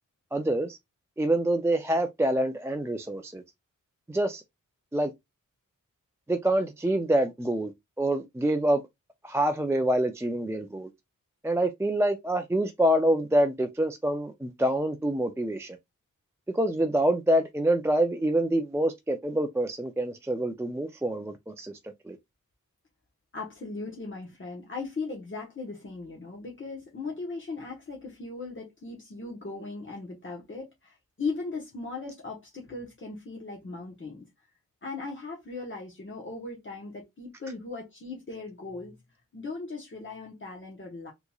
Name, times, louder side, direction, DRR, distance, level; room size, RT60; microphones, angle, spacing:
voice 1, 0.3-0.8 1.2-3.4 4.1-4.4 4.9-5.1 6.3-7.7 8.0-8.8 9.2-10.9 11.4-15.8 16.5-22.2, right 1 dB, 10° right, 0.3 m, -26 dB
voice 2, 23.3-34.3 34.8-38.9 39.3-41.1, left 3 dB, 35° left, 1.1 m, -38 dB
3.7 x 2.9 x 2.3 m
wide cardioid pair, 130°, 33 cm